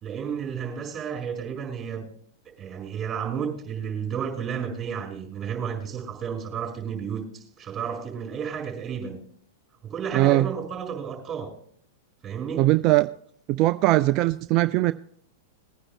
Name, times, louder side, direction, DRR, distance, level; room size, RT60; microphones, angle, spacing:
voice 1, 0.0-2.1 2.6-9.2 9.8-11.5 12.2-12.7, right 7 dB, 25° right, 5.1 m, -32 dB
voice 2, 10.1-10.5 12.6-13.1 13.5-14.9, right 17 dB, 45° right, 0.3 m, -20 dB
22.0 x 9.9 x 2.2 m
hypercardioid pair, 105°, 0 cm